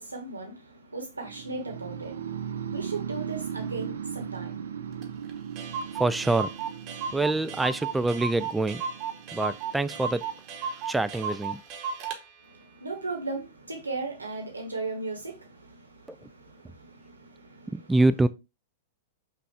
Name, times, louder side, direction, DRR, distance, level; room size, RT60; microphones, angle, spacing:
voice 1, 0.0-5.2 12.4-17.9, right 3 dB, 85° right, 1.1 m, -37 dB
sound 1, 1.2-11.2, right 8 dB, 65° right, 0.5 m, -38 dB
Clock, 5.0-5.1 5.3-5.4 5.6-12.2, right 6 dB, 35° right, 1.0 m, -35 dB
voice 2, 5.9-6.5 7.1-8.8 9.3-10.3 10.8-11.6 16.1-16.2 17.7-18.3, right 2 dB, 5° right, 0.3 m, -25 dB
5.7 x 2.5 x 3.3 m
figure-of-eight pair, 100°, 0 cm